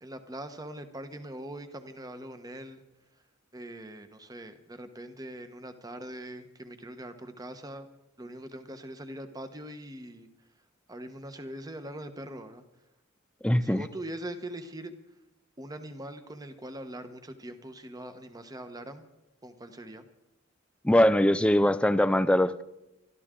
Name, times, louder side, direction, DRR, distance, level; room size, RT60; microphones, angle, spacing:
voice 1, 0.0-2.8 3.5-7.9 8.2-10.3 10.9-12.6 13.6-14.9 15.6-19.0 19.4-20.0, right 1 dB, 20° right, 8 dB, 1.1 m, -42 dB
voice 2, 13.4-13.8 20.8-22.6, left 1 dB, 5° left, 14 dB, 0.4 m, -22 dB
24.5 x 12.5 x 3.8 m, 0.94 s
head